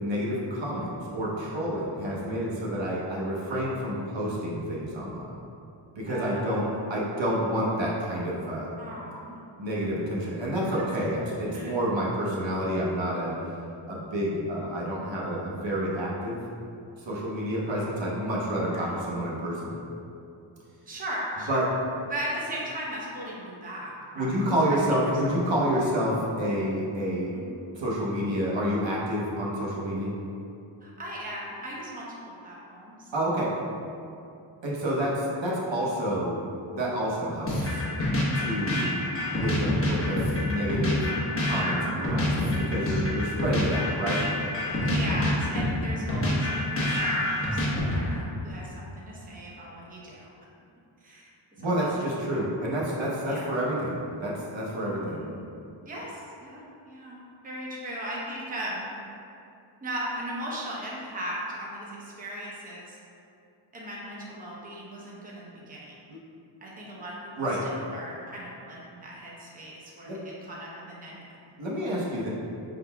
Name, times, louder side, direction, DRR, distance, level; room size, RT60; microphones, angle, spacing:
voice 1, 0.0-5.3 6.0-8.7 9.6-13.4 13.9-16.4 17.1-19.7 21.5-21.7 24.1-27.4 27.7-30.1 33.1-33.5 34.6-36.4 36.7-37.8 38.3-39.0 39.4-41.1 41.4-44.3 51.6-55.2 66.1-66.2 67.4-67.7 70.1-70.2 71.6-72.3, equal, 65° right, -5 dB, 0.9 m, -29 dB
voice 2, 6.1-6.9 8.8-9.4 10.8-11.8 17.6-17.9 18.7-18.9 20.8-21.7 22.1-24.4 25.2-25.3 27.3-27.6 30.8-32.2 32.4-33.1 42.5-43.5 44.8-50.3 51.0-51.3 51.6-52.0 52.3-52.4 53.2-53.5 54.8-55.5 55.8-57.2 57.4-58.9 59.8-63.0 63.7-66.0 66.6-67.3 67.6-71.4, right 1 dB, 20° right, -5 dB, 0.8 m, -38 dB
sound 1, 37.5-48.3, left 1 dB, 25° left, 1.0 m, -27 dB
5.4 x 3.8 x 2.3 m, 2.6 s
wide cardioid pair, 110°, 48 cm